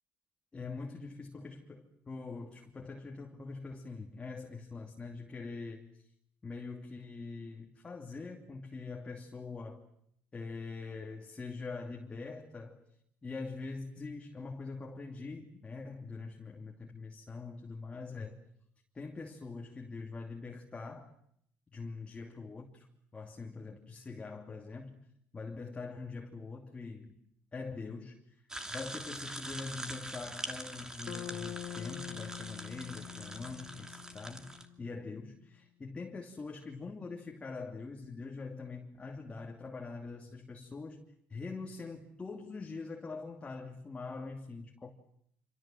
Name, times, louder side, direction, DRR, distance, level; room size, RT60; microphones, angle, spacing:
voice 1, 0.5-6.1 6.4-9.8 10.3-12.8 13.2-18.4 18.9-21.1 21.7-22.9 23.1-25.0 25.3-27.2 27.5-28.4 28.7-41.0 41.3-44.9, left 4 dB, 20° left, 1 dB, 2.8 m, -43 dB
sound 1, 28.5-34.6, right 1 dB, 10° right, 2.9 m, -44 dB
Bass guitar, 31.1-35.1, left 13 dB, 70° left, 1.3 m, -45 dB
28.0 x 26.0 x 7.7 m, 0.71 s
cardioid pair, 130°, 5 cm